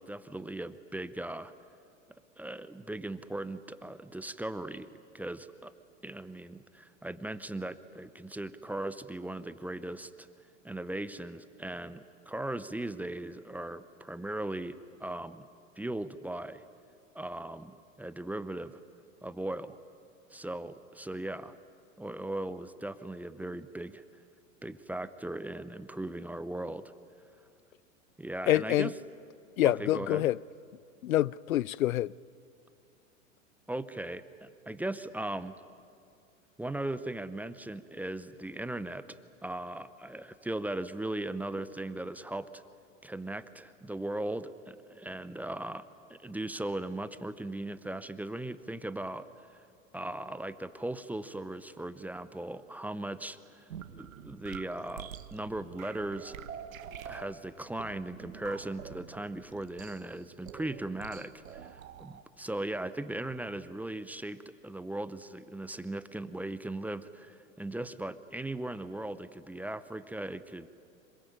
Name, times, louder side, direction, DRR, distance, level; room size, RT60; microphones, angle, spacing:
voice 1, 0.0-1.5 2.4-4.9 5.1-5.7 6.0-10.3 10.6-15.5 15.8-16.6 17.1-18.8 19.2-19.8 20.3-21.6 22.0-24.0 24.6-26.9 28.2-28.9 29.6-30.3 33.7-35.6 36.6-42.6 43.0-49.3 49.5-49.6 49.9-53.7 54.0-56.4 57.1-70.7, right 1 dB, 5° right, 0.7 m, -38 dB
voice 2, 28.5-28.9 29.6-30.4 31.0-32.1, left 14 dB, 85° left, 0.5 m, -26 dB
sound 1, 53.7-62.2, right 9 dB, 80° right, 1.4 m, -47 dB
26.0 x 21.5 x 9.1 m
hypercardioid pair, 105°, 40 cm